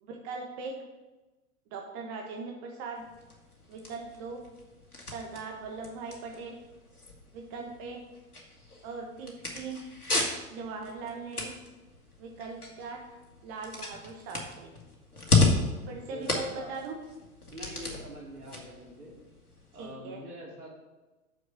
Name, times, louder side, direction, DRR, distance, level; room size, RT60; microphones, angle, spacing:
voice 1, 0.0-0.7 1.7-3.1 3.7-4.4 5.1-6.6 7.3-8.0 8.8-9.8 10.5-11.5 12.2-13.0 13.4-14.7 15.9-17.0 19.7-20.2, right 4 dB, 35° right, 1 dB, 1.2 m, -40 dB
sound 1, 3.0-19.9, left 3 dB, 85° left, 2.0 m, -34 dB
voice 2, 15.3-16.7 17.5-19.2 19.7-20.7, equal, 80° right, -4 dB, 3.4 m, -45 dB
6.5 x 6.4 x 6.8 m, 1.1 s
figure-of-eight pair, 95°, 44 cm